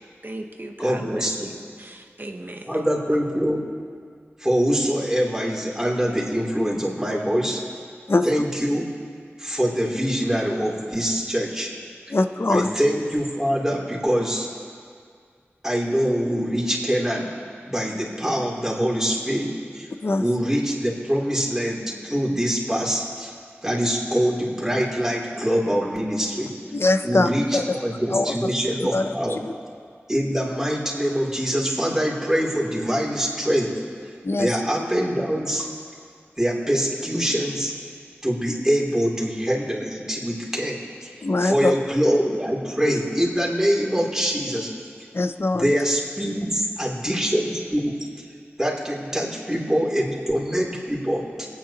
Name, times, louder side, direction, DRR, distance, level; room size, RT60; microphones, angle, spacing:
voice 1, 0.2-2.9, right 1 dB, 45° right, 4 dB, 1.0 m, -38 dB
voice 2, 0.8-1.5 2.7-3.6 4.4-7.6 8.2-8.9 9.4-11.7 12.5-14.5 15.6-17.3 17.6-19.5 19.7-19.9 20.2-23.3 23.6-26.5 27.0-29.4 30.1-33.7 34.4-35.7 36.4-37.7 38.2-41.1 41.4-44.7 45.6-47.9 48.6-51.5, equal, 10° right, -4 dB, 3.1 m, -24 dB
voice 3, 12.1-12.7 20.0-20.2 26.7-27.6 28.1-28.3 28.9-29.4 34.2-34.5 41.2-41.7 45.1-45.8, left 2 dB, 60° left, 8 dB, 0.6 m, -22 dB
26.5 x 9.2 x 2.9 m, 2.1 s
wide cardioid pair, 45°, 5 cm